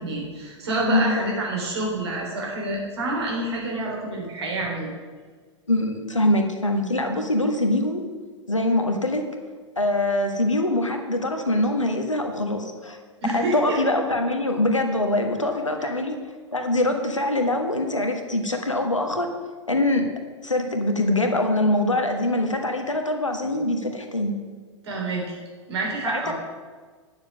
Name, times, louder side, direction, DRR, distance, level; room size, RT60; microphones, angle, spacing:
voice 1, 0.0-4.9 13.2-13.8 15.8-15.9 24.8-25.2 25.7-26.3, right 2 dB, 60° right, -2 dB, 3.7 m, -27 dB
voice 2, 0.9-1.3 5.7-8.0 8.5-9.2 9.8-13.0 13.2-16.2 16.5-19.3 19.7-20.1 20.4-24.4 26.1-26.3, left 1 dB, 85° left, 4 dB, 1.4 m, -23 dB
9.7 x 7.0 x 6.0 m, 1.5 s
figure-of-eight pair, 100°, 16 cm